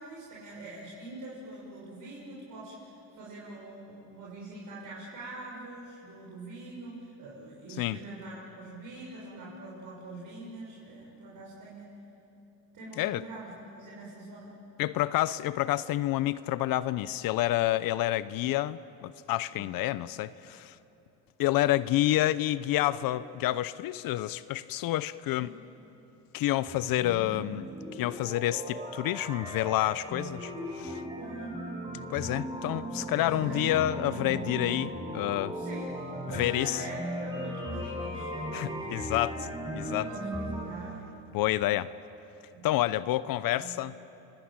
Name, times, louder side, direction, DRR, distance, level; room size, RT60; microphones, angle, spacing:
voice 1, 0.0-11.9 12.7-14.5 19.5-19.6 25.4-25.5 31.2-31.5 33.1-33.7 35.5-36.0 36.3-39.2 40.0-41.0 42.5-42.7 43.6-43.8, right 2 dB, 55° right, -5 dB, 6.5 m, -44 dB
voice 2, 14.8-20.8 21.4-25.5 26.3-27.6 27.9-31.0 32.1-35.6 36.3-36.8 38.5-39.5 39.7-40.1 41.3-41.9 42.6-43.9, left 14 dB, 60° left, 16 dB, 0.8 m, -29 dB
sound 1, 26.7-40.6, right 1 dB, 10° right, 6.9 m, -37 dB
27.0 x 22.0 x 8.8 m, 2.9 s
supercardioid pair, 95°, 39 cm